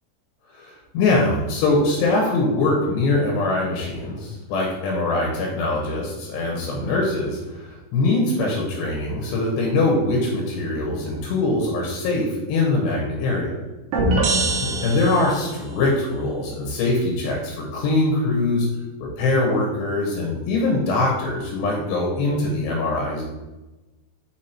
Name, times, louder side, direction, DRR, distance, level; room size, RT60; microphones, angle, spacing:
voice 1, 0.5-13.6 14.6-18.7 19.0-23.2, left 2 dB, 85° left, -1 dB, 3.5 m, -22 dB
sound 1, 13.9-15.6, right 2 dB, 65° right, 2.1 m, -22 dB
6.1 x 6.0 x 4.3 m, 1.1 s
omnidirectional pair, 4.7 m